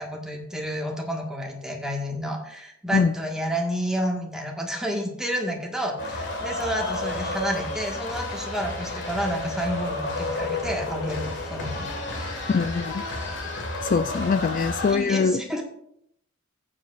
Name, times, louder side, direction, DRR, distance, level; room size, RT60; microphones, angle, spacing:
voice 1, 0.0-11.9 14.9-15.6, equal, 5° right, 0 dB, 1.5 m, -30 dB
sound 1, 6.0-14.9, left 2 dB, 65° left, 1.6 m, -31 dB
voice 2, 12.5-13.0 13.8-15.4, left 5 dB, 40° left, 11 dB, 0.3 m, -23 dB
16.5 x 7.4 x 2.5 m, 0.73 s
head